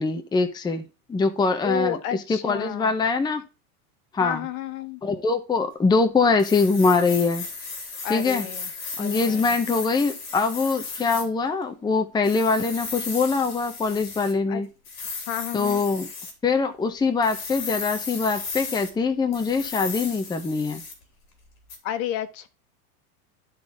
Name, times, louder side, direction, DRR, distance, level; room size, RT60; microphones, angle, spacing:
voice 1, 0.0-2.0 2.3-3.4 4.1-4.4 5.0-7.5 8.1-8.4 9.0-14.7 15.5-16.1 16.4-20.8, left 4 dB, 10° left, 0.8 m, -23 dB
voice 2, 1.6-3.0 4.2-5.0 8.0-8.7 9.0-9.6 14.5-14.6 15.3-15.8 21.8-22.5, left 11 dB, 60° left, 1.3 m, -31 dB
sound 1, 6.4-11.3 12.2-14.3 14.8-16.3 17.2-18.9 19.3-21.0 21.7-21.8, left 4 dB, 35° left, 3.4 m, -35 dB
12.5 x 4.2 x 3.5 m
supercardioid pair, 130°, 46 cm